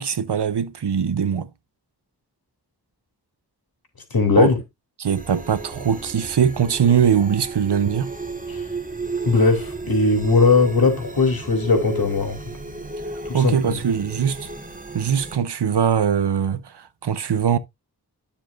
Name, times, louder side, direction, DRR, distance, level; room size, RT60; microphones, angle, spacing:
voice 1, 0.0-1.5 4.4-4.5 5.0-8.1 13.3-14.5 14.9-17.6, right 8 dB, 85° right, 0.8 m, -21 dB
voice 2, 4.1-4.6 8.5-8.6 9.2-12.4 13.2-13.8, left 4 dB, 60° left, 2.9 m, -19 dB
sound 1, 5.1-15.4, right 3 dB, 20° right, 1.5 m, -33 dB
10.5 x 7.0 x 2.5 m
wide cardioid pair, 75°, 40 cm